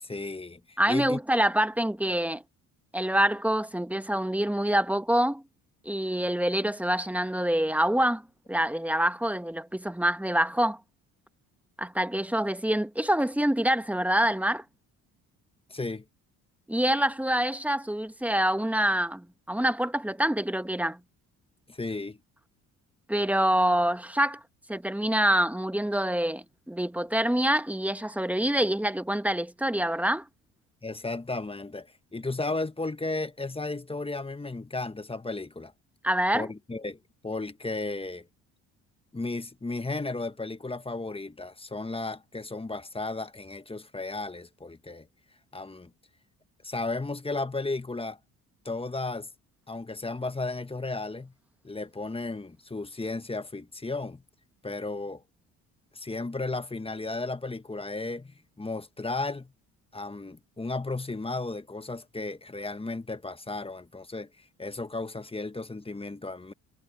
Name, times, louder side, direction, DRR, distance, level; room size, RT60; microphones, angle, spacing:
voice 1, 0.0-1.2 15.7-16.0 21.7-22.2 30.8-35.7 36.3-37.0 37.2-38.3 39.1-45.1 45.5-45.9 46.6-48.2 48.6-49.3 49.7-51.3 51.6-54.2 54.6-55.2 55.9-59.5 59.9-66.5, left 3 dB, 15° left, 1.4 m, -34 dB
voice 2, 0.8-2.4 2.9-5.4 5.8-8.2 8.5-10.8 11.8-14.6 16.7-21.0 23.1-24.4 24.7-30.3 36.0-36.5, right 1 dB, 5° right, 1.3 m, -26 dB
supercardioid pair, 70°, 37 cm